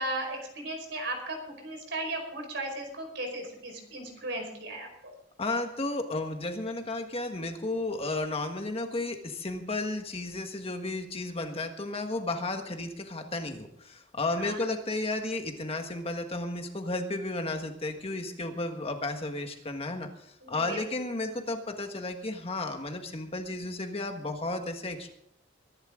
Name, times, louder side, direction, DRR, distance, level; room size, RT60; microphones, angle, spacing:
voice 1, 0.0-5.1 14.4-14.7 20.4-20.8, right 1 dB, 65° right, 3 dB, 4.9 m, -36 dB
voice 2, 5.4-25.1, left 2 dB, 30° left, 5 dB, 1.5 m, -33 dB
22.5 x 11.5 x 3.8 m, 0.74 s
head